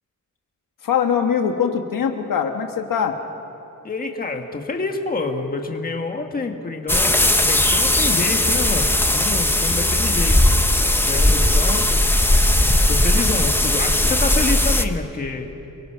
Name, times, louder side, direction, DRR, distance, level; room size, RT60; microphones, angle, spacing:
voice 1, 0.8-3.2, left 7 dB, 80° left, 5 dB, 1.7 m, -22 dB
voice 2, 3.8-10.5 11.0-12.2 12.9-15.5, left 3 dB, 25° left, 3 dB, 1.6 m, -27 dB
sound 1, 6.9-14.8, left 1 dB, 5° left, 0.8 m, -18 dB
28.5 x 23.0 x 5.8 m, 2.9 s
wide cardioid pair, 175°, 32 cm